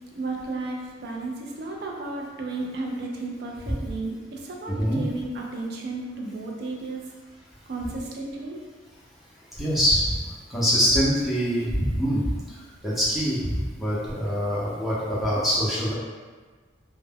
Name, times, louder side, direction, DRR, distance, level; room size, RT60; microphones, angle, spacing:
voice 1, 0.2-7.0 7.7-8.6, right 2 dB, 55° right, -1 dB, 0.4 m, -33 dB
voice 2, 4.7-5.0 9.6-10.2 10.5-12.6 12.8-15.9, equal, ahead, -9 dB, 0.5 m, -24 dB
2.1 x 2.1 x 3.4 m, 1.4 s
head